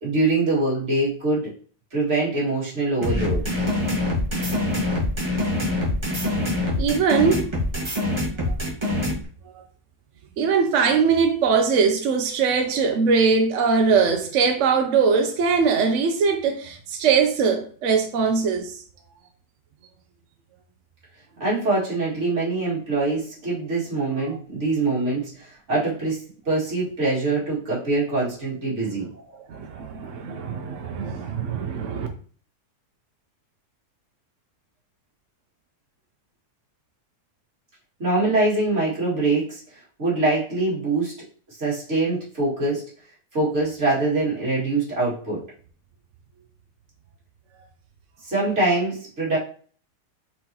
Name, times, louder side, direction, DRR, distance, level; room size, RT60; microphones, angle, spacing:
voice 1, 0.0-1.5 1.9-3.4 21.4-29.1 38.0-39.6 40.0-41.1 41.5-42.9 43.3-45.4 48.2-49.4, right 2 dB, 45° right, 2.5 m, -24 dB
sound 1, 3.0-9.1, left 2 dB, 20° right, 1.6 m, -24 dB
voice 2, 6.8-7.5 8.4-8.6 10.4-18.8 24.3-24.4 29.5-32.1, right 5 dB, 65° right, 0.8 m, -21 dB
4.5 x 4.1 x 2.9 m
omnidirectional pair, 1.7 m